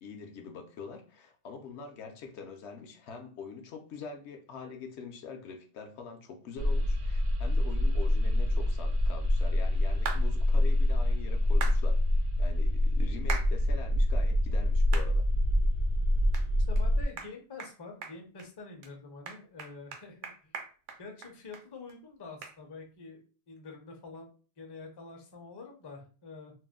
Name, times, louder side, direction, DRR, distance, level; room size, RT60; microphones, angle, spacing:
voice 1, 0.0-12.0 12.4-15.3, left 5 dB, 70° left, 4 dB, 0.8 m, -44 dB
sound 1, 6.6-17.0, left 1 dB, 60° right, 0.6 m, -26 dB
sound 2, 10.1-10.2 11.6-11.8 13.3-13.5 14.0-14.1 14.9-15.1 15.6-15.7 16.3-16.5 16.8-16.9 17.2-17.3 17.6-17.7 18.0-18.5 18.8-18.9 19.3-21.6 21.9-22.0 22.4-22.5, right 5 dB, 85° right, 0.9 m, -38 dB
voice 2, 16.7-20.5 21.0-23.2 23.5-24.3 24.6-26.5, left 4 dB, 30° left, 2 dB, 0.4 m, -46 dB
2.6 x 2.0 x 3.5 m, 0.37 s
omnidirectional pair, 1.2 m